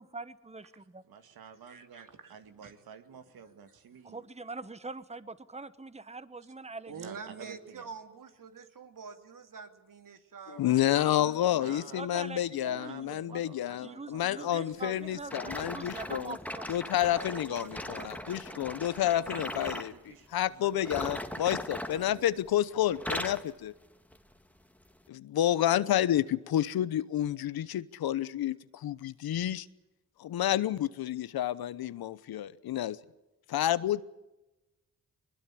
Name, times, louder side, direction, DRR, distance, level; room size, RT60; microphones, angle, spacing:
voice 1, 0.0-1.0 4.0-6.9 11.9-13.4 13.8-16.9, right 3 dB, 20° right, 14 dB, 1.3 m, -43 dB
voice 2, 1.1-4.2 6.9-7.9 11.4-12.0 12.6-15.3 19.2-21.6 21.9-22.3, right 7 dB, 85° right, 8 dB, 2.2 m, -50 dB
voice 3, 1.7-2.4 2.6-2.7 6.9-11.7 17.0-19.3, right 5 dB, 65° right, 7 dB, 2.6 m, -47 dB
voice 4, 10.5-16.4 16.7-19.9 20.3-23.7 25.1-29.7 30.2-33.0 33.5-34.0, left 12 dB, 90° left, 17 dB, 0.9 m, -29 dB
sound 1, 15.3-19.9 20.8-22.6 22.9-23.5 24.1-24.3 25.0-25.1, left 1 dB, 5° left, 2.0 m, -39 dB
21.5 x 20.5 x 8.6 m, 0.99 s
cardioid pair, 60°, 35 cm